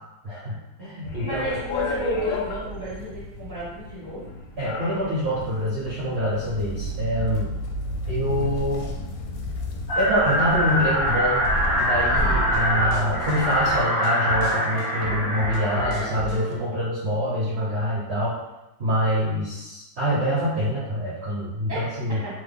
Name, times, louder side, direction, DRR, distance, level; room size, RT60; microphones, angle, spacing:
voice 1, 0.2-1.4 4.6-7.5 8.1-8.9 9.9-11.4 11.7-18.4 18.8-22.2, equal, 65° right, -9 dB, 0.6 m, -25 dB
sound 1, 1.0-13.7, left 1 dB, 75° left, 1.1 m, -32 dB
voice 2, 1.2-4.3 21.7-22.3, equal, 30° left, -9 dB, 0.4 m, -32 dB
sound 2, 9.9-16.1, equal, 55° left, 1.0 m, -24 dB
sound 3, 11.6-16.6, right 2 dB, 85° right, 1.2 m, -35 dB
2.9 x 2.1 x 3.4 m, 1.0 s
omnidirectional pair, 1.9 m